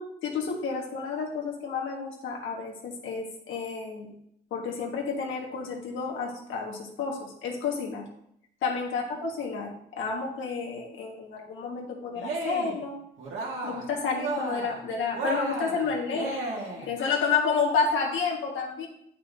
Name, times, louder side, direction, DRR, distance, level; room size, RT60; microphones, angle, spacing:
voice 1, 0.0-4.1 4.5-8.1 8.6-13.0 13.6-18.9, left 5 dB, 80° left, -1 dB, 1.5 m, -30 dB
Cheering, 12.1-12.8 13.2-13.9 14.1-14.8 15.1-16.9, right 2 dB, 75° right, 2.0 m, -33 dB
8.3 x 5.5 x 2.7 m, 0.74 s
cardioid pair, 90°, 20 cm